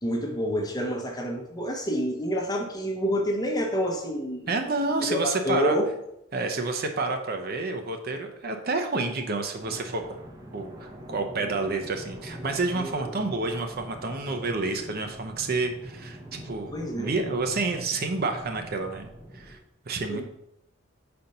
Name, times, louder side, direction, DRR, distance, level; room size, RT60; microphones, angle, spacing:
voice 1, 0.0-5.9 12.7-13.1 16.7-17.1 20.1-20.2, equal, 20° left, 1 dB, 1.0 m, -28 dB
voice 2, 4.5-5.8 6.3-10.2 10.5-19.6 19.8-20.2, right 3 dB, 50° right, 5 dB, 0.7 m, -29 dB
sound 1, 9.6-19.6, equal, 20° right, 0.8 m, -43 dB
5.1 x 4.3 x 5.3 m, 0.82 s
head